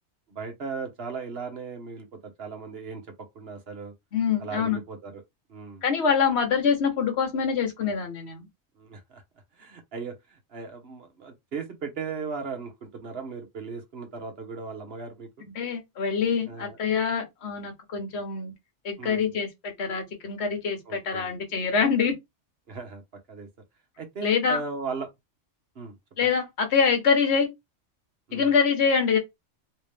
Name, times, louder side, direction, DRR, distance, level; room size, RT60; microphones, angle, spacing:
voice 1, 0.3-3.0 3.3-3.9 4.4-5.2 5.5-5.8 8.8-9.2 9.6-10.2 10.5-15.5 16.5-16.8 19.0-19.3 20.8-21.3 22.7-23.0 23.3-23.5 24.0-25.1 25.7-25.9 28.3-28.5, right 5 dB, 55° right, 1.3 m, -37 dB
voice 2, 4.1-4.8 5.8-8.5 15.4-18.5 18.8-22.1 24.2-24.6 26.2-27.5 28.3-29.2, left 6 dB, 60° left, 1.3 m, -25 dB
3.2 x 3.0 x 3.3 m
omnidirectional pair, 1.3 m